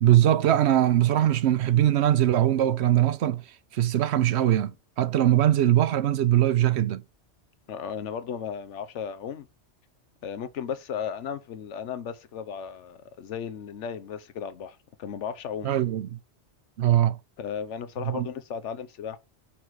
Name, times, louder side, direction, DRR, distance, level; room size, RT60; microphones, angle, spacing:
voice 1, 0.0-3.4 3.7-4.7 5.0-7.0 15.6-16.1 16.8-17.2 18.0-18.3, right 12 dB, 70° right, 0.9 m, -21 dB
voice 2, 7.7-9.5 10.2-15.9 17.4-19.2, left 7 dB, 75° left, 1.1 m, -35 dB
5.8 x 4.7 x 4.7 m
omnidirectional pair, 1.2 m